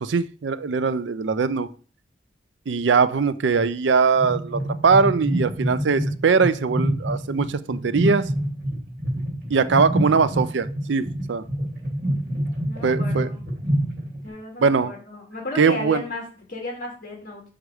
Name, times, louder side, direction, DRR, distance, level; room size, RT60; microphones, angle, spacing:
voice 1, 0.0-1.7 2.7-8.2 9.5-11.4 12.8-13.3 14.6-14.9 15.6-16.0, right 5 dB, 70° right, 0.5 m, -21 dB
sound 1, 4.1-14.3, right 1 dB, 50° right, 3.0 m, -26 dB
voice 2, 12.6-13.4 14.2-17.4, left 2 dB, 50° left, 2.6 m, -34 dB
6.5 x 4.7 x 4.9 m
head